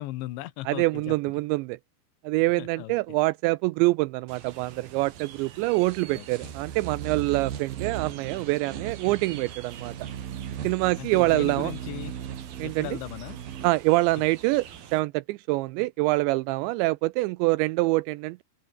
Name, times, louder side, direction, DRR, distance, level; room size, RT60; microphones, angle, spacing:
voice 1, 0.0-1.2 2.6-3.0 6.1-6.5 10.6-12.1 12.6-13.4, left 16 dB, 75° left, 3.3 m, -38 dB
voice 2, 0.7-1.8 2.2-9.9 10.6-11.7 12.6-12.9 13.6-14.7 14.9-18.4, right 21 dB, 85° right, 2.6 m, -25 dB
sound 1, 4.3-15.0, right 9 dB, 55° right, 3.7 m, -38 dB
open air
omnidirectional pair, 5.5 m